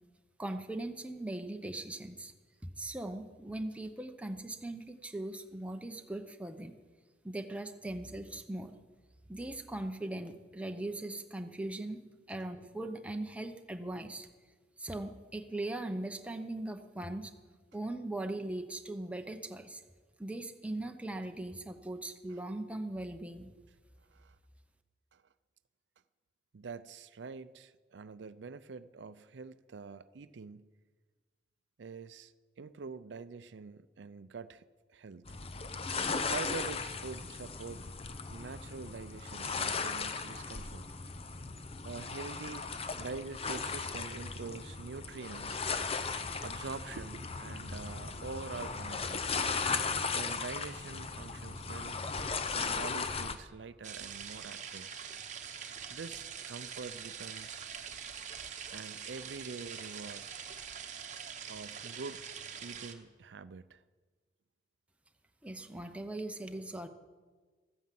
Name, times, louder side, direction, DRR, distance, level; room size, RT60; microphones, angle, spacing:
voice 1, 0.4-2.3 2.8-6.7 7.2-8.7 9.3-12.0 12.3-14.3 14.8-17.3 17.7-19.8 20.2-23.5 65.4-66.9, right 1 dB, 5° right, 5 dB, 0.8 m, -39 dB
voice 2, 26.5-30.7 31.8-34.6 34.9-35.3 36.2-37.9 38.3-40.8 41.8-46.1 46.4-49.2 50.1-52.0 52.5-54.9 55.9-57.6 58.7-60.3 61.5-62.2 62.6-63.8, right 4 dB, 90° right, 14 dB, 0.5 m, -45 dB
sound 1, 35.3-53.4, left 4 dB, 35° left, 0.7 m, -37 dB
sound 2, 53.8-62.9, right 7 dB, 45° right, 1.0 m, -44 dB
13.5 x 9.4 x 7.6 m, 1.4 s
head